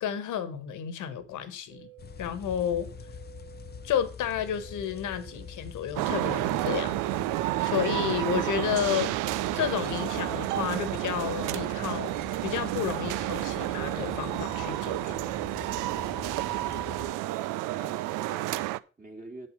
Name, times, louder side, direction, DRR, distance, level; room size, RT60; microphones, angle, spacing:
voice 1, 0.0-1.9 2.2-2.9 3.8-7.0 7.6-9.1 9.5-12.1 12.4-15.2, left 8 dB, 70° left, 1.5 m, -31 dB
sound 1, 1.7-14.7, right 19 dB, 50° right, 2.1 m, -56 dB
sound 2, 2.0-17.1, left 8 dB, 30° left, 0.5 m, -45 dB
sound 3, 6.0-18.8, right 16 dB, 75° right, 0.5 m, -30 dB
voice 2, 17.7-19.5, right 2 dB, 25° right, 2.6 m, -48 dB
7.9 x 7.5 x 5.5 m
hypercardioid pair, 55°, 31 cm